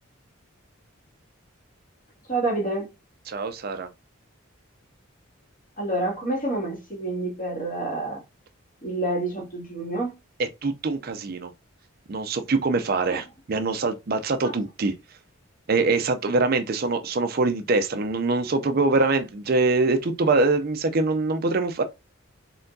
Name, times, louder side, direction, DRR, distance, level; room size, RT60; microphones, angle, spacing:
voice 1, 2.3-2.9 5.8-8.2 8.8-10.2 13.1-13.2 14.4-14.6, right 2 dB, 40° left, 2.1 m, -28 dB
voice 2, 3.3-3.9 10.6-11.5 12.1-14.9 15.7-21.8, right 3 dB, 45° right, 0.4 m, -24 dB
4.4 x 3.7 x 2.6 m
head